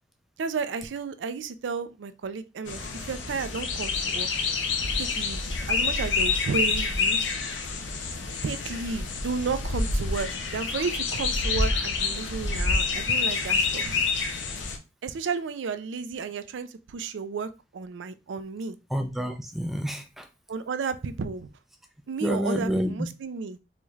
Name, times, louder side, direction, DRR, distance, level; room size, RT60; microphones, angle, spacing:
voice 1, 0.4-4.3 5.0-5.4 5.7-7.2 8.4-14.0 15.0-18.8 20.5-21.5 22.1-23.6, right 5 dB, 80° right, 12 dB, 0.4 m, -32 dB
sound 1, 2.7-14.8, left 4 dB, 85° left, 0.6 m, -27 dB
voice 2, 18.9-20.3 22.2-22.9, equal, ahead, 5 dB, 0.4 m, -28 dB
4.1 x 3.1 x 2.3 m, 0.27 s
head